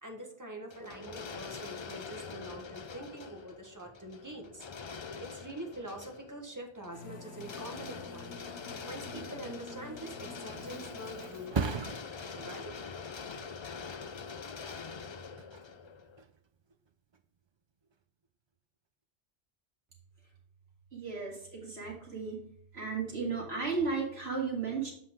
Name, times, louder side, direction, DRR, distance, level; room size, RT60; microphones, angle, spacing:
voice 1, 0.0-4.7 5.2-8.3 8.8-12.0 12.3-12.8, right 1 dB, 20° right, 2 dB, 1.2 m, -44 dB
sound 1, 0.7-16.2, left 5 dB, 45° left, 0.3 m, -44 dB
sound 2, 6.9-11.9, left 3 dB, 90° left, 1.2 m, -49 dB
Thump thud, 10.0-17.4 17.8-18.3, right 5 dB, 40° right, 0.4 m, -41 dB
voice 2, 20.9-22.4 22.7-24.9, right 5 dB, 75° right, -2 dB, 2.6 m, -34 dB
7.7 x 5.7 x 3.6 m, 0.68 s
omnidirectional pair, 1.1 m